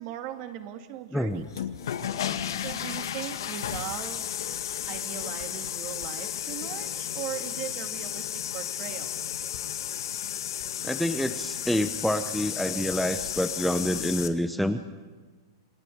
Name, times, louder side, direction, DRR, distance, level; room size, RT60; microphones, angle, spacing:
voice 1, 0.0-1.4 2.6-4.2 4.9-8.3 8.5-9.1, right 11 dB, 45° right, 7 dB, 2.5 m, -38 dB
voice 2, 1.1-1.5 10.8-14.8, equal, ahead, 8 dB, 0.9 m, -27 dB
sound 1, 1.4-14.3, left 9 dB, 75° left, 2.0 m, -33 dB
28.5 x 20.0 x 8.7 m, 1.4 s
hypercardioid pair, 140°, 2 cm